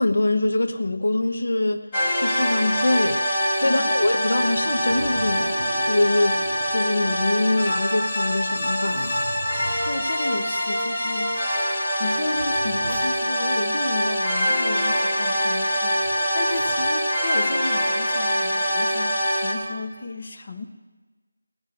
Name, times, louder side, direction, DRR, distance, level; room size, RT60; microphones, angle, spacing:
voice 1, 0.0-5.6 5.9-9.2, left 2 dB, 70° left, 6 dB, 1.0 m, -24 dB
sound 1, 1.9-19.5, equal, 15° left, 1.9 m, -24 dB
Zipper (clothing), 4.4-7.3 7.7-7.8 8.3-10.2 10.9-11.0 12.0-13.6 16.0-16.9 18.3-18.8, right 1 dB, 50° right, 2.2 m, -38 dB
voice 2, 9.9-11.6 12.0-16.0 16.3-20.7, left 3 dB, 35° left, 5 dB, 0.9 m, -33 dB
17.5 x 6.4 x 9.0 m, 1.3 s
figure-of-eight pair, 175°, 0 cm